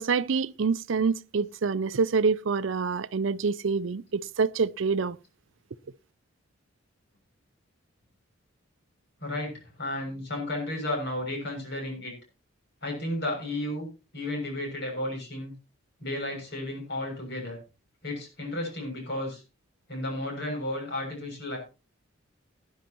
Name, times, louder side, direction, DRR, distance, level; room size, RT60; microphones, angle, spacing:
voice 1, 0.0-5.2, right 5 dB, 70° right, 0.5 m, -26 dB
voice 2, 9.2-12.1 12.8-13.9 14.1-15.5 16.0-17.6 18.0-19.4 19.9-21.6, left 1 dB, 55° left, 6.7 m, -33 dB
18.5 x 10.5 x 2.9 m
head